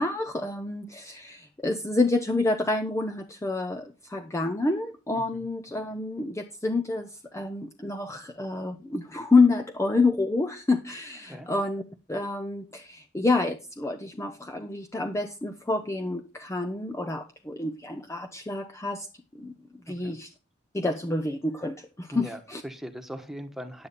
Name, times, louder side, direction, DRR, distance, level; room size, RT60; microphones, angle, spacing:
voice 1, 0.0-11.8 12.1-19.1 19.3-19.5 19.9-20.3 20.7-22.6, left 3 dB, 15° left, 7 dB, 0.6 m, -28 dB
voice 2, 5.1-5.5 11.2-11.5 19.9-20.2 22.1-23.9, equal, ahead, 6 dB, 1.3 m, -40 dB
10.0 x 8.5 x 4.1 m, 0.31 s
head